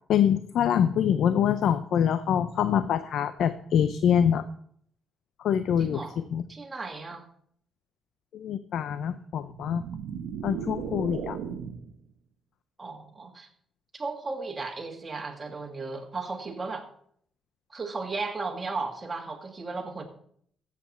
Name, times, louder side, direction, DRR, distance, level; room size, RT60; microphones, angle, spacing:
voice 1, 0.1-4.5 5.4-6.0 6.3-6.4 8.3-9.8 10.4-11.4, left 9 dB, 75° left, 12 dB, 0.5 m, -25 dB
voice 2, 5.8-6.1 6.5-7.3 12.8-13.5 13.9-16.9 17.7-20.0, right 3 dB, 25° right, 2 dB, 2.1 m, -35 dB
sound 1, 9.4-12.0, right 7 dB, 90° right, 0.9 m, -36 dB
14.5 x 7.6 x 4.3 m, 0.63 s
cardioid pair, 90°, 0 cm